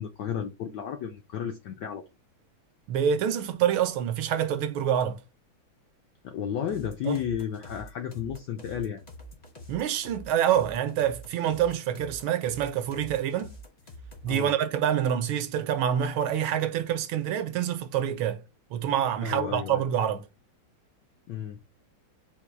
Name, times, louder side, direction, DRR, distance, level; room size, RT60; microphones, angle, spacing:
voice 1, 0.0-2.0 6.2-9.0 14.3-14.5 19.2-19.8 21.3-21.6, left 8 dB, 80° left, 0.9 m, -33 dB
voice 2, 2.9-5.2 7.1-7.2 9.7-13.5 14.2-18.4 18.7-20.2, right 9 dB, 80° right, 1.4 m, -26 dB
sound 1, 6.7-14.4, equal, 45° left, 0.5 m, -46 dB
4.3 x 2.2 x 4.3 m
omnidirectional pair, 2.4 m